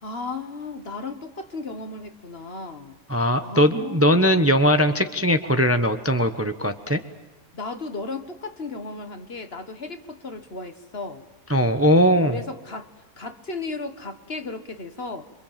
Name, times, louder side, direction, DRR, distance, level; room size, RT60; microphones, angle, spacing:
voice 1, 0.0-3.0 3.4-4.3 7.5-11.2 12.3-12.9 13.2-15.3, left 3 dB, 45° left, 1.6 m, -35 dB
voice 2, 3.1-7.0 11.5-12.4, equal, 10° right, 1.0 m, -20 dB
27.0 x 25.5 x 7.5 m
omnidirectional pair, 1.5 m